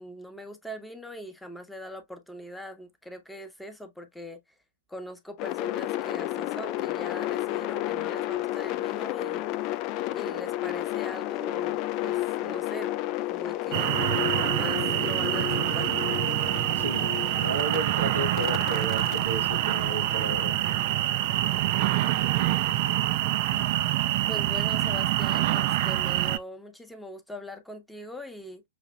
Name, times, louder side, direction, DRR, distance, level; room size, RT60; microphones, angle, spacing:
voice 1, 0.0-4.4 4.9-9.5 10.1-14.0 14.3-15.9 24.3-28.6, equal, 5° left, 0.9 m, -41 dB
sound 1, 5.4-17.8 18.4-20.5, left 15 dB, 35° left, 0.3 m, -32 dB
sound 2, 13.7-26.4, right 14 dB, 45° right, 0.4 m, -26 dB
voice 2, 16.8-17.1 17.4-20.5, right 2 dB, 75° right, 1.2 m, -33 dB
5.8 x 2.7 x 2.3 m
figure-of-eight pair, 105°, 0 cm